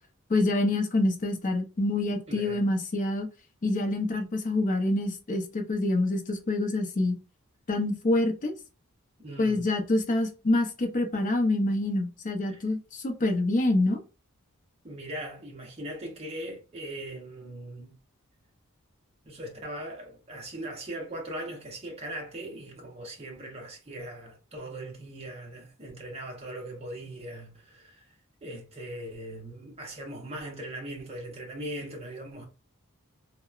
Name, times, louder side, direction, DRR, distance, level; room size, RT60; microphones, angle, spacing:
voice 1, 0.3-3.3 3.6-7.2 7.7-8.5 9.4-14.0, left 2 dB, 35° left, 0.5 m, -26 dB
voice 2, 2.3-2.6 9.2-9.7 12.5-12.6 14.8-18.0 19.2-28.1 28.4-32.4, right 1 dB, 30° right, 0.8 m, -40 dB
2.8 x 2.0 x 2.3 m
head